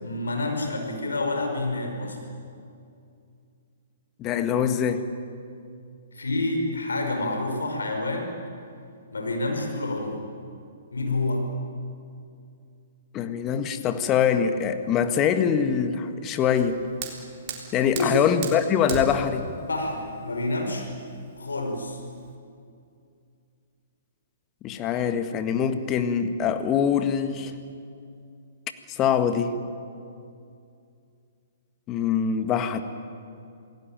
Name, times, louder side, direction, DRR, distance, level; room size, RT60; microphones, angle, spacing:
voice 1, 0.0-2.2 6.1-8.3 9.1-10.2 10.9-11.4 17.9-18.1 19.7-20.9 21.4-22.0, left 2 dB, 80° left, 3 dB, 5.5 m, -28 dB
voice 2, 4.2-5.1 13.1-16.8 17.7-19.5 24.6-27.5 28.9-29.6 31.9-32.8, left 8 dB, 25° left, 9 dB, 1.7 m, -24 dB
Fire, 16.4-22.3, right 6 dB, 40° right, 4.0 m, -38 dB
27.5 x 18.5 x 9.0 m, 2.4 s
figure-of-eight pair, 120°, 0 cm